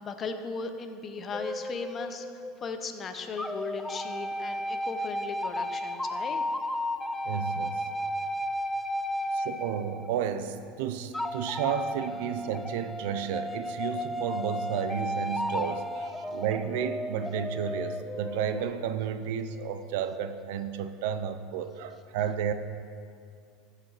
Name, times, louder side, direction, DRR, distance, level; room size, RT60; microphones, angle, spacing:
voice 1, 0.0-6.4, left 5 dB, 30° left, 7 dB, 0.8 m, -37 dB
sound 1, 1.3-2.9 3.4-10.5 11.1-18.6, left 1 dB, 10° left, 0.3 m, -34 dB
voice 2, 7.2-7.8 9.3-22.5, right 8 dB, 75° right, 10 dB, 0.6 m, -32 dB
14.5 x 4.9 x 4.9 m, 2.3 s
supercardioid pair, 115°, 0 cm